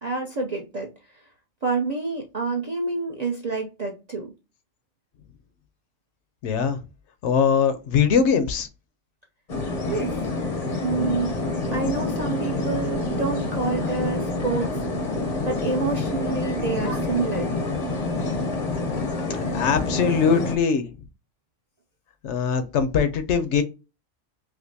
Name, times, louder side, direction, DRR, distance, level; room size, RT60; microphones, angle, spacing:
voice 1, 0.0-1.3 1.6-4.3 9.9-10.2 10.8-11.4 11.7-14.8 15.5-17.5, right 4 dB, 50° right, 0.5 m, -28 dB
voice 2, 6.4-6.8 7.2-8.7 11.7-12.0 19.3-20.9 22.2-23.6, left 6 dB, 65° left, 0.8 m, -22 dB
sound 1, 9.5-20.6, left 3 dB, 40° left, 0.6 m, -27 dB
4.9 x 2.0 x 2.6 m
omnidirectional pair, 1.3 m